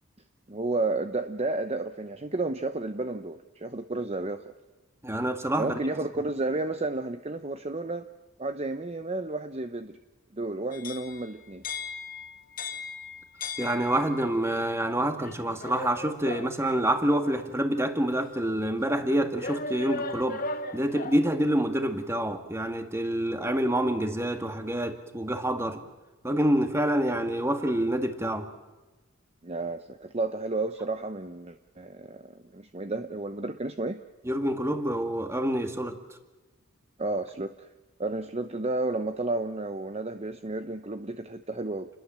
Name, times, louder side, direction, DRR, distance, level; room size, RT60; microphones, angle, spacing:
voice 1, 0.5-4.5 5.5-8.1 8.4-10.0 10.3-11.6 29.4-34.0 37.0-37.7 38.0-41.9, right 2 dB, 30° right, 9 dB, 0.8 m, -32 dB
voice 2, 5.0-5.8 13.6-20.4 20.7-25.8 26.2-28.5 34.3-36.0, right 1 dB, 10° right, 7 dB, 1.9 m, -27 dB
sound 1, 10.7-14.3 15.2-17.5 18.2-18.3 19.4-21.3, left 3 dB, 40° left, 1.5 m, -38 dB
29.0 x 21.5 x 7.6 m, 1.2 s
head